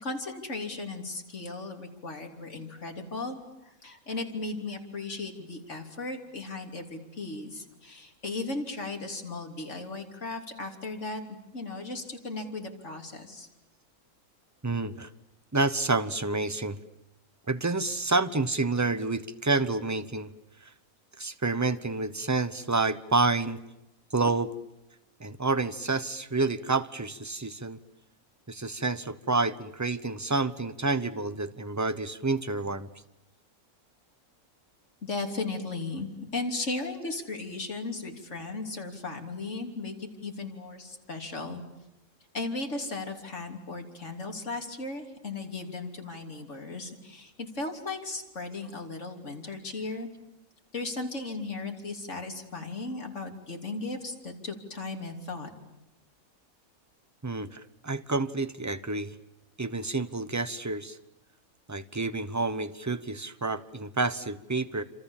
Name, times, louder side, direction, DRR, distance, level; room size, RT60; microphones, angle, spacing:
voice 1, 0.0-3.4 3.8-11.2 11.5-13.5 35.0-41.6 42.3-50.1 50.7-55.5, left 3 dB, 55° left, 3 dB, 3.5 m, -36 dB
voice 2, 14.6-15.1 15.5-16.8 17.5-20.3 20.6-20.7 21.2-23.6 24.1-24.5 25.2-27.8 28.5-32.9 57.2-59.1 59.6-61.0 61.7-64.8, right 3 dB, 15° right, 12 dB, 0.8 m, -29 dB
27.5 x 27.0 x 7.3 m, 0.90 s
omnidirectional pair, 1.6 m